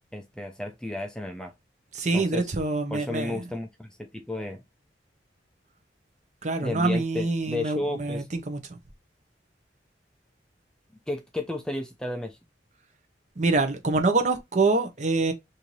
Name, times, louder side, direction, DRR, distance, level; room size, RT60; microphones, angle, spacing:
voice 1, 0.1-1.5 2.1-2.5 2.9-4.6 6.6-8.3 11.1-12.4, left 2 dB, 5° left, 0.4 m, -33 dB
voice 2, 1.9-3.4 6.4-8.6 13.4-15.3, right 3 dB, 40° right, 0.7 m, -25 dB
3.1 x 2.6 x 3.9 m
head